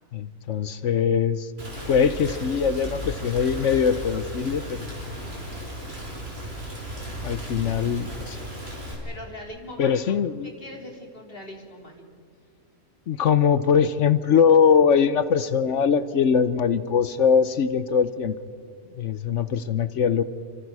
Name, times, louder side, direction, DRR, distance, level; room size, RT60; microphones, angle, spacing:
voice 1, 0.1-1.5 1.9-4.9 7.2-8.4 9.8-10.5 13.1-18.4 19.0-20.2, left 7 dB, 60° left, 14 dB, 1.1 m, -22 dB
Rain, 1.6-9.0, equal, 45° right, 6.1 m, -35 dB
voice 2, 9.0-10.1 10.4-12.0, left 1 dB, 40° left, 1 dB, 3.5 m, -41 dB
28.5 x 25.5 x 4.8 m, 2.4 s
omnidirectional pair, 1.5 m